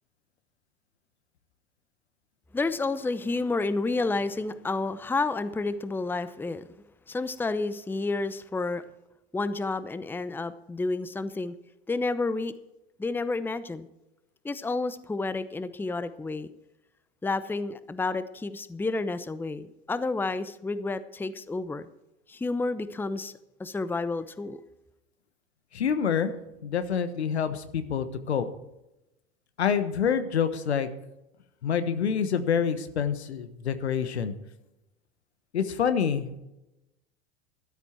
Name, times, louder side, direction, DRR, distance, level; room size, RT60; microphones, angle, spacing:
voice 1, 2.5-6.6 7.1-8.8 9.3-11.5 11.9-12.5 13.0-13.9 14.4-16.5 17.2-21.9 22.3-23.3 23.6-24.6, left 3 dB, 5° left, 14 dB, 0.7 m, -30 dB
voice 2, 25.7-26.3 26.6-28.5 29.6-30.9 31.6-34.3 35.5-36.4, left 7 dB, 85° left, 11 dB, 1.2 m, -27 dB
13.0 x 12.0 x 4.5 m, 0.92 s
hypercardioid pair, 85°, 32 cm